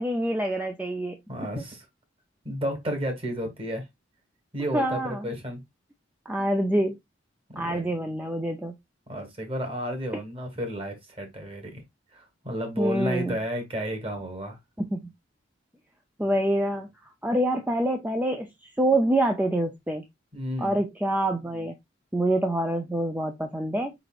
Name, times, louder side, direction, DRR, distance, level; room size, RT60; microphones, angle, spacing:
voice 1, 0.0-1.2 4.7-5.3 6.3-7.0 7.6-8.7 12.8-13.4 14.8-15.1 16.2-16.9 17.2-18.5 18.8-20.0 20.6-21.7 22.1-23.9, right 1 dB, 10° right, 0.5 m, -26 dB
voice 2, 1.3-1.8 2.4-3.9 4.5-5.6 7.5-7.9 9.1-11.8 12.1-14.6 20.3-20.8, equal, 30° right, 1.5 m, -32 dB
4.7 x 4.0 x 2.4 m
head